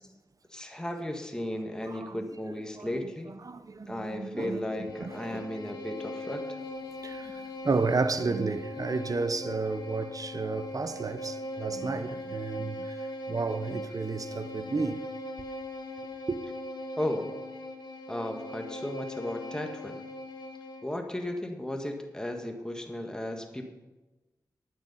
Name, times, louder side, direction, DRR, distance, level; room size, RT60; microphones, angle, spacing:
voice 1, 0.5-3.3 3.9-6.6 17.0-17.3 18.1-20.0 20.8-23.6, left 1 dB, 10° left, 1.5 m, -35 dB
voice 2, 1.8-2.2 2.7-3.0 3.4-5.5 7.0-15.1 16.3-16.4, right 4 dB, 50° right, 0.8 m, -32 dB
Bowed string instrument, 4.3-21.0, left 1 dB, 65° left, 1.7 m, -40 dB
12.0 x 9.4 x 5.5 m
cardioid pair, 55°, 8 cm